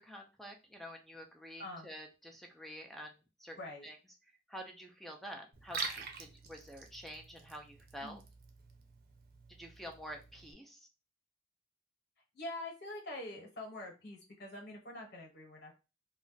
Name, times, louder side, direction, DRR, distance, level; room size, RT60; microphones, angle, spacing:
voice 1, 0.0-3.6 3.8-4.0 4.5-8.2 9.6-10.9, equal, ahead, 2 dB, 0.4 m, -48 dB
Liquid, 5.5-10.5, right 5 dB, 55° right, 0.6 m, -46 dB
voice 2, 12.3-15.8, left 1 dB, 60° left, 1 dB, 1.2 m, -45 dB
2.5 x 2.2 x 3.8 m, 0.29 s
head